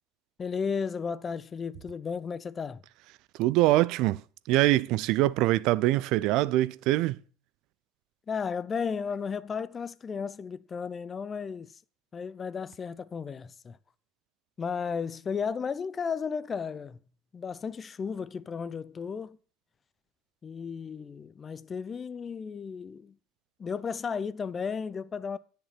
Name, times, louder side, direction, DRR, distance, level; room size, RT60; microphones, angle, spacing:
voice 1, 0.4-2.8 8.3-11.8 12.1-13.8 14.6-17.0 17.3-19.4 20.4-23.2 23.6-25.4, left 6 dB, 30° left, 0.7 m, -34 dB
voice 2, 3.4-4.2 4.5-7.2, right 16 dB, 60° right, 0.5 m, -24 dB
10.0 x 6.9 x 7.6 m
figure-of-eight pair, 65°, 0 cm